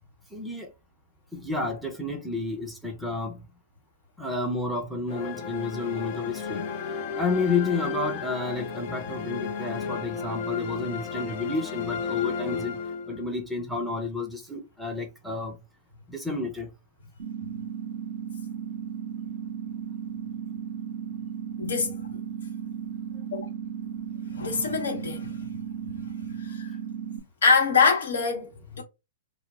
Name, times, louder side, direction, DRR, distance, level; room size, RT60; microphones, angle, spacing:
voice 1, 0.3-0.7 1.3-3.5 4.2-6.7 7.1-12.8 13.1-15.6 16.1-16.7, left 3 dB, 5° right, 0.6 m, -30 dB
sound 1, 5.1-13.4, left 5 dB, 45° left, 0.5 m, -34 dB
sound 2, 17.2-27.2, right 8 dB, 60° right, 0.6 m, -35 dB
voice 2, 21.6-22.0 23.3-23.4 24.3-25.3 26.4-26.7 27.4-28.8, left 5 dB, 70° left, 0.9 m, -24 dB
2.2 x 2.0 x 3.3 m
figure-of-eight pair, 115°, 0 cm